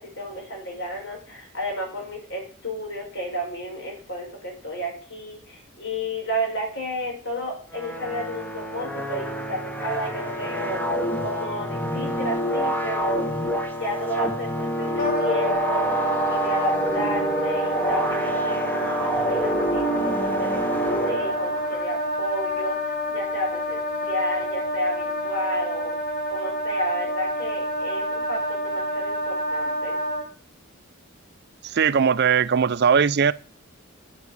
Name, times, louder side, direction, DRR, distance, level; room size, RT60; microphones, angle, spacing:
voice 1, 0.0-10.8 11.2-13.3 13.7-16.0 16.3-25.9 26.3-30.0, equal, 60° left, 5.3 m, -32 dB
sound 1, 7.7-21.8, right 1 dB, 10° left, 1.2 m, -27 dB
Wind instrument woodwind instrument, 15.0-30.3, equal, 45° left, 4.7 m, -28 dB
voice 2, 31.7-33.3, right 6 dB, 55° right, 0.5 m, -19 dB
9.5 x 7.4 x 8.1 m
head